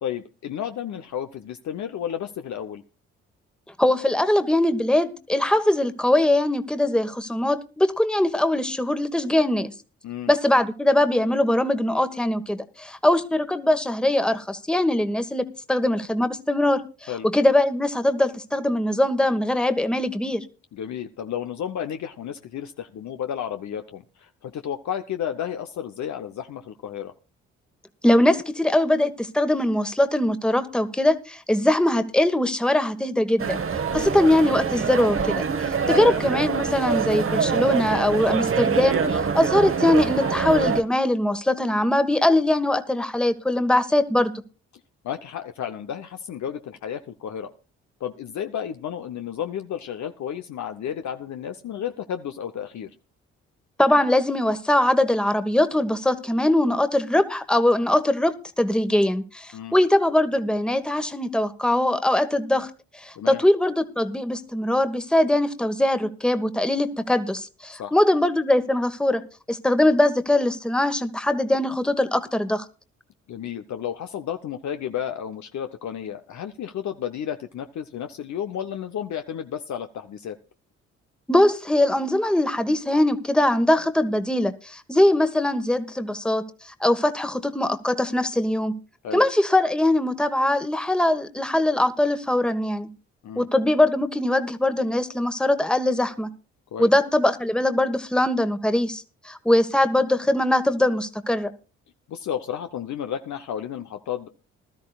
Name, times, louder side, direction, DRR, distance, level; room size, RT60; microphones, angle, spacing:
voice 1, 0.0-2.8 10.0-10.3 17.1-17.3 20.7-27.1 33.9-34.1 35.9-36.1 45.0-47.5 48.0-52.9 59.5-59.8 63.2-63.4 67.8-67.9 73.3-80.4 89.0-89.2 93.2-93.5 96.7-96.9 102.1-104.3, left 9 dB, 60° left, 0.8 m, -32 dB
voice 2, 3.8-9.7 10.3-20.4 28.0-33.6 33.9-44.3 53.8-69.2 69.5-72.6 81.3-86.4 86.8-88.7 89.1-92.9 93.4-96.3 96.8-101.5, left 1 dB, 5° left, 1.3 m, -21 dB
sound 1, 33.4-40.8, right 6 dB, 40° right, 1.2 m, -25 dB
20.0 x 13.0 x 2.4 m
hypercardioid pair, 50°, 33 cm